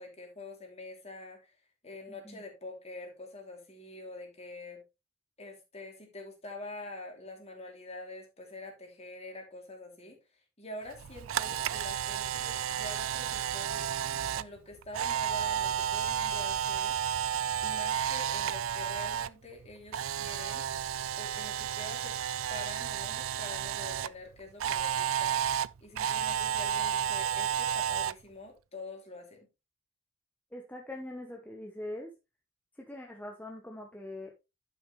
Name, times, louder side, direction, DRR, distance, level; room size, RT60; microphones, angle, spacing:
voice 1, 0.0-1.6 1.8-4.8 5.4-10.2 10.6-13.9 14.3-17.0 17.6-20.6 21.2-22.2 22.5-25.4 25.8-29.5, left 2 dB, 30° left, 2 dB, 3.0 m, -46 dB
voice 2, 2.1-2.4 30.5-32.1 32.8-34.4, left 1 dB, 10° left, 1 dB, 1.1 m, -42 dB
Camera, 10.9-19.3 19.6-24.1 24.6-28.1, right 9 dB, 70° right, 0.4 m, -32 dB
11.5 x 6.2 x 3.2 m, 0.25 s
head